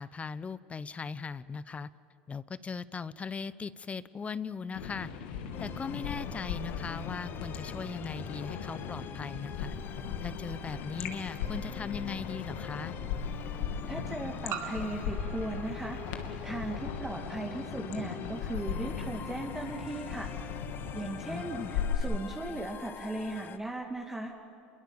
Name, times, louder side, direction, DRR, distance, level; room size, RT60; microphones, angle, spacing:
voice 1, 0.0-1.9 2.3-5.1 5.6-9.7 10.2-12.9 21.3-21.7, left 5 dB, 25° left, 17 dB, 0.8 m, -39 dB
sound 1, 4.7-22.0, left 7 dB, 75° left, 2.6 m, -38 dB
sound 2, 5.5-23.6, left 8 dB, 40° left, 1.2 m, -47 dB
sound 3, 10.6-10.7 12.3-12.4 14.5-17.0, right 8 dB, 55° right, 2.2 m, -44 dB
voice 2, 13.9-16.0 16.4-20.3 20.9-24.3, right 2 dB, 10° right, 1 dB, 2.3 m, -37 dB
28.5 x 22.5 x 7.2 m, 3.0 s
hypercardioid pair, 85°, 5 cm